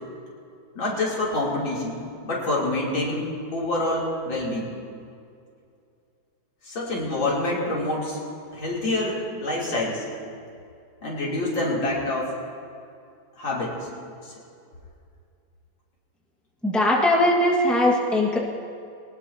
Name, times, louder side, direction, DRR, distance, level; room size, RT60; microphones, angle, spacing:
voice 1, 0.8-3.2 3.5-4.7 6.6-8.2 8.5-10.0 11.0-12.3 13.4-13.8 14.2-14.3, left 2 dB, 85° left, -5 dB, 4.0 m, -26 dB
voice 2, 16.6-18.4, left 1 dB, ahead, -2 dB, 1.4 m, -20 dB
21.5 x 19.0 x 2.8 m, 2.5 s
omnidirectional pair, 2.1 m